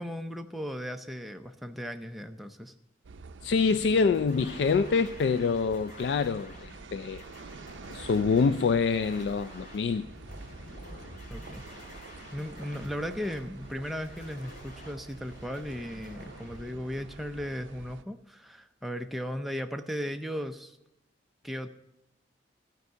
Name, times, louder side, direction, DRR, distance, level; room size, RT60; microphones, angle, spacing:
voice 1, 0.0-2.7 11.3-11.6 12.3-20.8 21.4-21.7, equal, ahead, 5 dB, 0.5 m, -36 dB
sound 1, 3.0-18.0, right 4 dB, 85° right, 0.5 m, -48 dB
voice 2, 3.4-7.3 7.9-10.0, left 5 dB, 65° left, 12 dB, 0.3 m, -26 dB
sound 2, 4.1-18.0, left 1 dB, 45° left, 3.0 m, -48 dB
14.0 x 4.6 x 7.8 m, 0.91 s
head